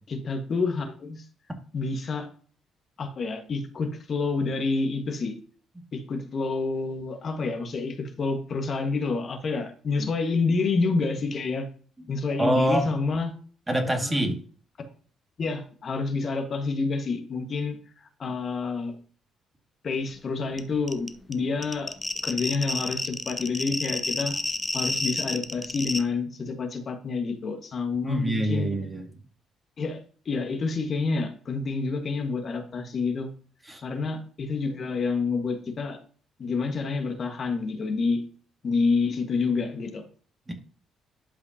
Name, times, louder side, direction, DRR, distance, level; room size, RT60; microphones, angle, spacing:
voice 1, 0.1-1.2 1.7-2.3 3.0-5.3 5.9-11.7 12.1-13.3 14.0-14.2 15.4-18.9 19.8-21.9 22.2-24.4 24.7-28.7 29.8-33.3 33.8-36.0 36.4-38.2 38.6-40.0, left 4 dB, 50° left, 4 dB, 1.5 m, -28 dB
voice 2, 12.4-12.9 13.7-14.4 28.0-29.0 33.7-33.8 40.5-40.6, right 1 dB, 20° right, 4 dB, 2.0 m, -25 dB
sound 1, 20.6-20.7 20.9-26.0, left 2 dB, 20° left, 0.8 m, -29 dB
11.5 x 5.0 x 2.8 m, 0.43 s
hypercardioid pair, 50°, 0 cm